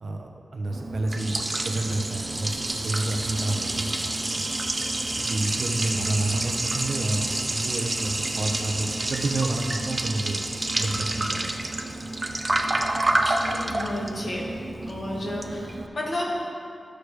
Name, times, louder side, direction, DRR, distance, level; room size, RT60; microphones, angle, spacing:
voice 1, 0.0-3.9 4.3-4.5 5.2-10.5 10.7-11.6, right 2 dB, 65° right, 2 dB, 0.8 m, -29 dB
Liquid, 0.7-15.9, right 2 dB, 30° right, 0.6 m, -28 dB
voice 2, 4.8-5.2 13.1-14.5 14.9-16.4, left 1 dB, 45° left, -5 dB, 2.0 m, -32 dB
13.5 x 6.5 x 3.3 m, 2.3 s
wide cardioid pair, 100°, 0 cm